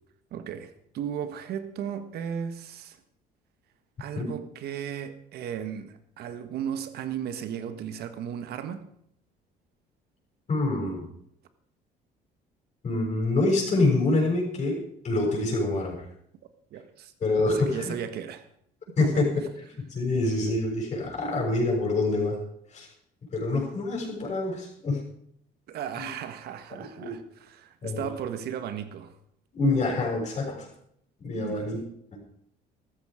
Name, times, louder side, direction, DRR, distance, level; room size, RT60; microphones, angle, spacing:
voice 1, 0.3-3.0 4.0-8.9 16.7-17.1 17.5-18.4 19.0-19.5 25.7-29.2 31.3-31.8, right 9 dB, 70° right, 1.6 m, -35 dB
voice 2, 10.5-11.1 12.8-16.0 17.2-17.9 19.0-19.3 19.8-22.4 22.7-22.9 23.3-25.0 25.9-26.1 26.7-27.2 27.8-28.0 29.5-30.7 31.2-31.8 32.1-32.2, left 2 dB, 40° left, 6.8 m, -26 dB
14.5 x 13.0 x 5.0 m
cardioid pair, 110°, 17 cm